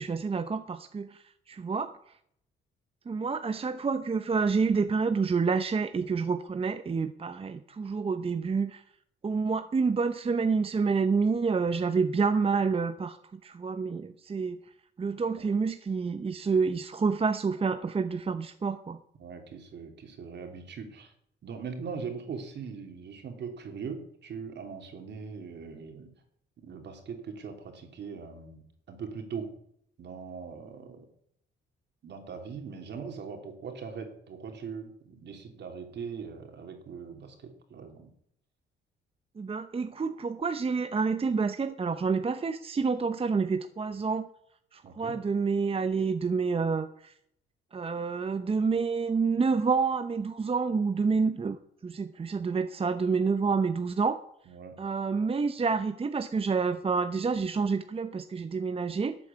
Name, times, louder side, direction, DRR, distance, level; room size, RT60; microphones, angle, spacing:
voice 1, 0.0-1.9 3.1-8.8 9.2-14.6 15.0-19.0 39.4-44.3 44.7-47.1 47.7-51.6 51.8-54.2 54.8-59.2, right 5 dB, 30° right, 10 dB, 0.8 m, -28 dB
voice 2, 19.2-21.1 21.4-26.1 26.6-29.5 30.0-31.1 32.0-38.1 44.8-45.2 54.5-54.8, right 5 dB, 60° right, 5 dB, 3.2 m, -41 dB
13.0 x 8.2 x 8.4 m, 0.70 s
cardioid pair, 90°, 20 cm